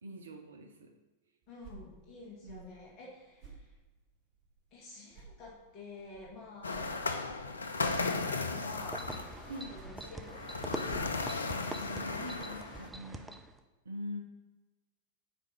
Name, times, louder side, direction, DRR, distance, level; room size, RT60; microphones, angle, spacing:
voice 1, 0.0-1.0 2.4-2.8 9.5-9.8 11.7-13.4 13.8-14.2, left 1 dB, 70° right, 5 dB, 0.5 m, -44 dB
sound 1, 1.4-4.8 5.1-8.6 9.5-12.1, right 5 dB, 45° right, 1.2 m, -55 dB
voice 2, 1.5-3.7 4.7-6.8 7.2-7.5 8.1-9.1 9.5-11.2 11.7-12.2, left 3 dB, 40° left, -4 dB, 1.6 m, -50 dB
sound 2, 6.6-12.9, left 3 dB, 75° left, 0.4 m, -36 dB
sound 3, 8.7-13.6, right 2 dB, 5° right, 0.4 m, -44 dB
5.0 x 4.6 x 4.8 m, 1.2 s
figure-of-eight pair, 90°, 0 cm